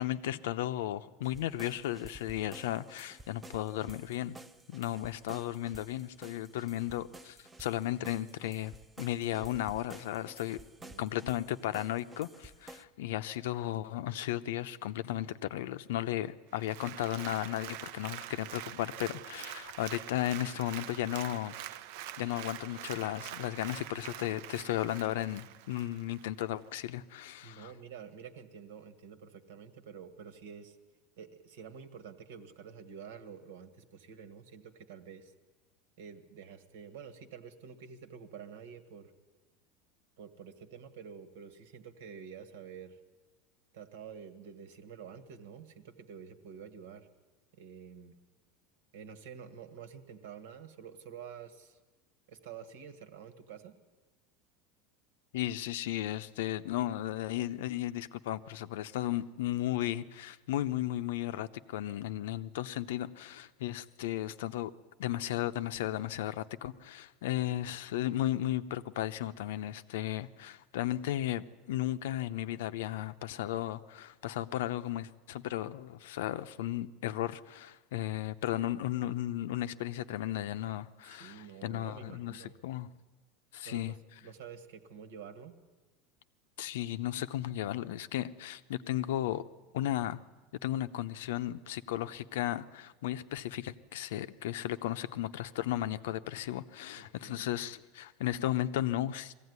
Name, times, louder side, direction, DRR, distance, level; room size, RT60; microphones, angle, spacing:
voice 1, 0.0-4.4 4.7-10.6 11.0-21.5 22.2-27.7 55.3-64.7 65.0-82.9 83.5-83.9 86.6-89.4 89.7-90.2 90.6-99.3, left 13 dB, 85° left, 0.7 m, -35 dB
sound 1, 1.2-12.8, right 2 dB, 10° right, 0.6 m, -52 dB
Applause, 16.5-26.3 26.7-26.8, right 12 dB, 60° right, 0.6 m, -45 dB
voice 2, 27.4-30.8 31.2-35.3 36.0-39.1 40.2-43.0 43.7-47.1 47.5-48.2 48.9-51.8 52.3-53.7 81.0-82.5 83.6-85.6 97.0-97.5, right 7 dB, 85° right, 1.7 m, -49 dB
21.5 x 15.5 x 9.6 m
supercardioid pair, 165°, 0 cm